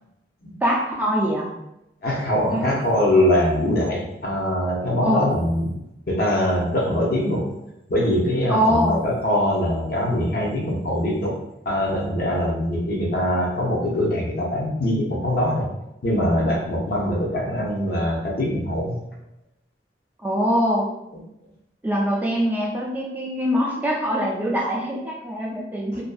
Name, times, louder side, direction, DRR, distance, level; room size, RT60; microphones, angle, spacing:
voice 1, 0.6-1.6 2.5-2.7 5.0-5.2 8.5-9.0 20.2-20.9 21.8-26.0, equal, 10° right, -4 dB, 0.3 m, -23 dB
voice 2, 2.0-5.7 6.1-7.5 7.9-11.4 11.7-15.7 16.0-19.0, left 1 dB, 55° left, -2 dB, 0.6 m, -22 dB
2.5 x 2.2 x 2.3 m, 0.87 s
head